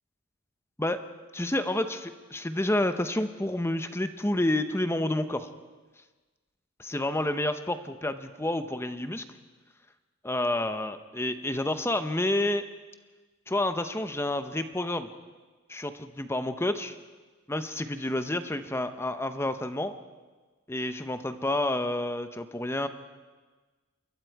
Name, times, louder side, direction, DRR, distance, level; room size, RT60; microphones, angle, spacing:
voice 1, 1.3-5.5 6.9-9.2 10.2-12.6 13.5-15.1 15.7-17.0 17.5-19.9 20.7-22.9, left 1 dB, 10° left, 10 dB, 0.8 m, -29 dB
28.0 x 22.5 x 4.7 m, 1.3 s
head